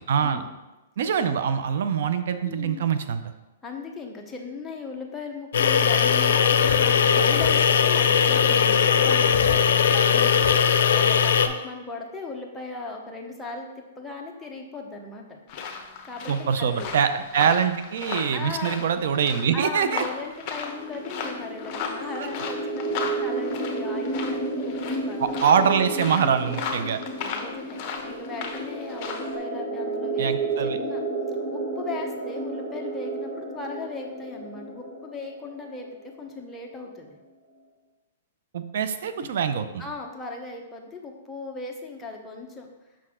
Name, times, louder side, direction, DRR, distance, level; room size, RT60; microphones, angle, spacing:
voice 1, 0.1-0.4 1.0-3.2 16.3-20.0 25.2-27.0 30.2-30.8 38.5-39.8, right 7 dB, 65° right, 10 dB, 0.5 m, -24 dB
voice 2, 2.4-2.8 3.6-15.4 16.0-16.9 18.3-18.8 19.5-25.2 26.8-31.0 31.5-37.2 39.2-39.4 39.8-42.7, left 3 dB, 5° left, -1 dB, 0.8 m, -38 dB
sound 1, 5.5-11.5, left 7 dB, 75° left, 0.4 m, -19 dB
sound 2, 15.5-29.4, left 5 dB, 35° left, 0.8 m, -36 dB
sound 3, 20.5-36.1, right 2 dB, 15° right, 1.5 m, -32 dB
5.9 x 4.6 x 3.6 m, 1.1 s
hypercardioid pair, 150°, 0 cm